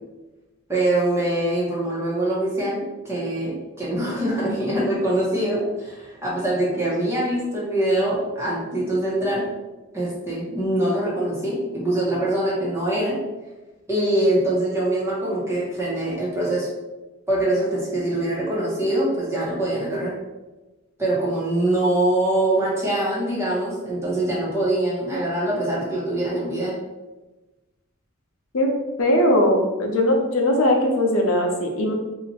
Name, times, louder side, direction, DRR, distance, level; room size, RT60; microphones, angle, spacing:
voice 1, 0.7-9.4 9.9-13.2 13.9-16.7 17.3-20.1 21.0-26.7, right 1 dB, 15° right, -7 dB, 1.0 m, -23 dB
voice 2, 29.0-31.9, left 1 dB, 90° left, 1 dB, 0.7 m, -20 dB
2.8 x 2.5 x 4.1 m, 1.1 s
head